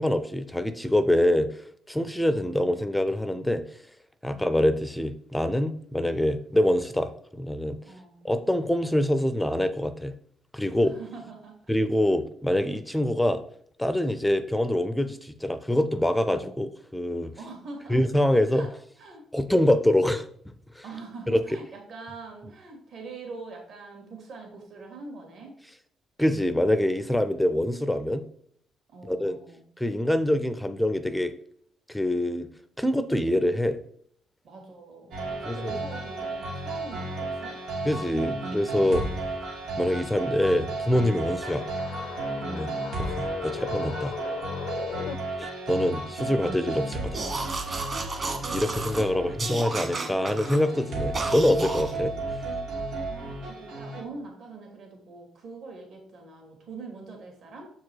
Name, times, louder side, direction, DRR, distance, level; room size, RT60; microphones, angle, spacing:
voice 1, 0.0-3.6 4.2-7.8 8.2-10.1 10.5-10.9 11.7-13.4 13.8-17.3 17.9-18.7 19.3-20.3 20.8-20.9 21.3-21.4 26.2-28.2 29.0-29.4 29.8-31.3 31.9-32.5 32.8-33.8 35.5-35.6 37.8-39.0 39.8-41.6 42.4-42.7 43.0-44.2 45.4-47.3 48.5-52.4, left 1 dB, 5° left, 11 dB, 0.4 m, -25 dB
voice 2, 2.3-2.7 4.3-4.6 7.8-8.3 10.8-11.6 16.3-16.7 17.3-18.0 18.5-18.7 19.0-19.3 20.8-25.6 28.9-29.6 34.4-37.6 42.5-42.9 53.1-57.7, right 3 dB, 60° right, 1 dB, 2.3 m, -44 dB
sound 1, 35.1-54.0, right 2 dB, 80° right, 2.4 m, -33 dB
sound 2, 41.3-45.1, left 9 dB, 75° left, 0.4 m, -37 dB
sound 3, 47.1-49.0 49.4-50.6 51.1-51.9, right 3 dB, 30° right, 1.4 m, -32 dB
7.2 x 4.7 x 4.6 m, 0.65 s
cardioid pair, 130°, 0 cm